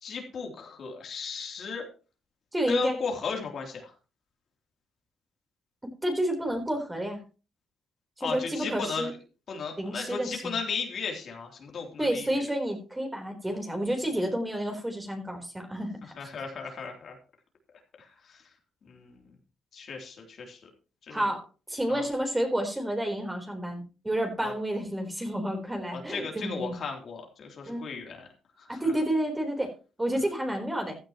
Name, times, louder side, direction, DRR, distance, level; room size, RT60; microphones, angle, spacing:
voice 1, 0.0-1.9 2.7-3.9 8.2-9.1 9.5-12.3 16.2-17.1 18.0-18.4 18.8-19.2 19.7-20.6 21.1-21.3 21.9-22.0 24.4-24.5 25.9-28.3 28.6-28.9, left 5 dB, 55° left, 2 dB, 3.2 m, -35 dB
voice 2, 2.5-3.0 6.0-7.2 8.2-9.1 9.8-10.5 12.0-16.3 21.1-26.7 27.7-27.9 28.7-29.7 30.0-31.0, right 1 dB, 10° right, 3 dB, 4.0 m, -30 dB
15.5 x 11.0 x 3.0 m, 0.34 s
cardioid pair, 90°, 0 cm